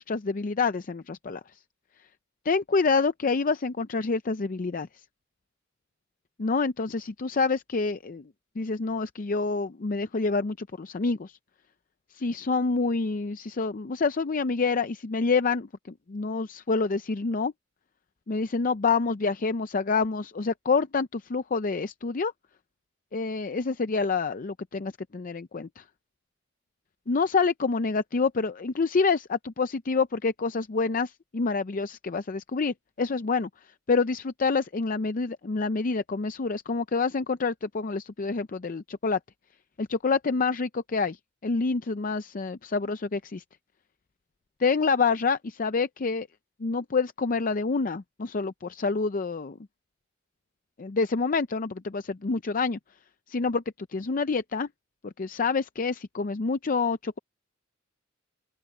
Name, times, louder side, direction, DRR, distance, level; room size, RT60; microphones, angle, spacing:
voice 1, 0.0-1.4 2.5-4.9 6.4-8.2 8.6-11.3 12.2-17.5 18.3-22.3 23.1-25.8 27.1-33.5 33.9-39.2 39.8-41.2 41.4-43.4 44.6-46.3 46.6-49.6 50.8-52.8 53.3-54.7 55.0-57.2, left 4 dB, 45° left, 0.5 m, -27 dB
open air
head